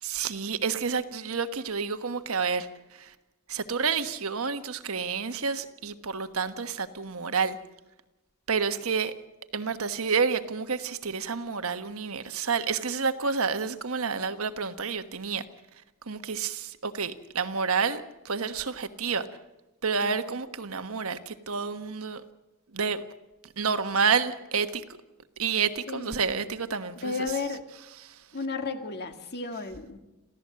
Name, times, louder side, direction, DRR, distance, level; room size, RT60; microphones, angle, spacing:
voice 1, 0.0-3.1 3.5-7.6 8.5-9.1 9.5-15.4 16.1-19.3 19.8-22.2 22.7-23.0 23.6-24.8 25.4-27.1 28.0-28.2, right 5 dB, 70° right, 1.3 m, -29 dB
voice 2, 25.9-26.2 27.0-27.6 28.3-30.0, left 4 dB, 50° left, 2.0 m, -33 dB
27.0 x 15.5 x 7.6 m
head